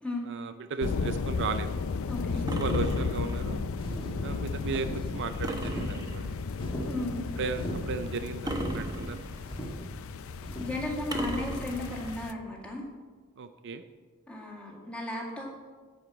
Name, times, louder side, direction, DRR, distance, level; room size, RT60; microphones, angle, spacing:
voice 1, 0.3-1.7 2.5-3.7 4.2-6.3 7.4-9.2 13.4-13.8, right 4 dB, 55° right, 8 dB, 0.5 m, -35 dB
sound 1, 0.8-12.3, left 5 dB, 65° left, 0.4 m, -34 dB
voice 2, 2.1-2.4 6.9-7.2 10.6-12.9 14.3-15.5, left 1 dB, 5° left, -3 dB, 2.0 m, -35 dB
sound 2, 2.5-3.5 5.4-6.5 8.5-9.6 11.1-12.2, right 1 dB, 20° right, 0.9 m, -37 dB
sound 3, 3.8-10.8, equal, 25° left, 1.4 m, -38 dB
11.0 x 5.0 x 7.7 m, 1.4 s
head